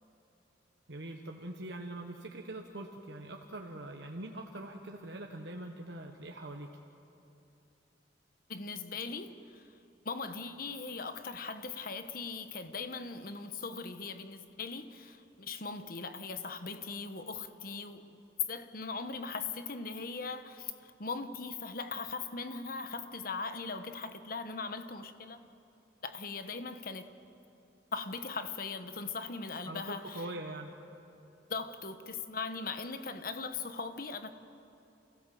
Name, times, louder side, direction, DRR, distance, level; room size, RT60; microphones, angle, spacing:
voice 1, 0.9-6.7 29.6-30.7, right 1 dB, 75° right, 2 dB, 1.3 m, -43 dB
voice 2, 8.5-9.6 10.0-18.2 18.5-25.4 26.0-27.1 27.9-30.3 31.5-34.3, left 4 dB, 50° left, 8 dB, 1.2 m, -40 dB
29.0 x 16.0 x 7.7 m, 2.9 s
head